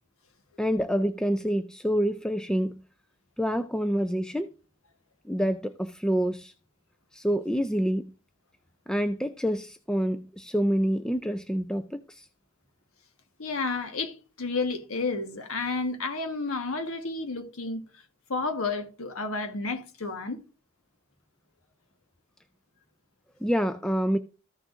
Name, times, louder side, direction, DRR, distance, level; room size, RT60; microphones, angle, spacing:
voice 1, 0.6-2.8 3.4-4.5 5.2-6.5 7.1-8.1 8.9-12.3 23.4-24.2, equal, 5° left, 0.4 m, -27 dB
voice 2, 13.4-17.8 18.3-20.4, left 3 dB, 70° left, 1.3 m, -31 dB
14.5 x 6.4 x 2.5 m
head